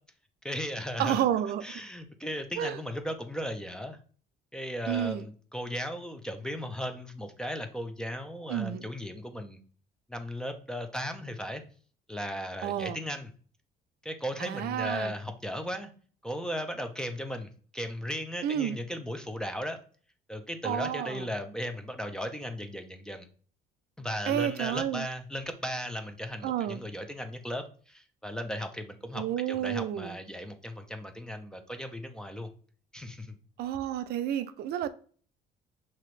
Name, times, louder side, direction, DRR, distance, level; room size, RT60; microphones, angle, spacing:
voice 1, 0.4-1.2 1.6-4.0 4.5-9.6 10.1-11.6 12.1-13.3 14.0-15.9 16.2-19.8 20.3-23.3 24.0-32.5 32.9-33.4, equal, 5° left, 0.6 m, -36 dB
voice 2, 1.0-1.8 2.6-2.8 4.9-5.2 8.5-8.8 12.6-13.0 14.4-15.1 18.4-18.8 20.6-21.3 24.3-25.1 26.4-26.8 29.1-30.2 33.6-34.9, right 10 dB, 70° right, 0.4 m, -30 dB
5.7 x 2.9 x 3.2 m
cardioid pair, 110°, 17 cm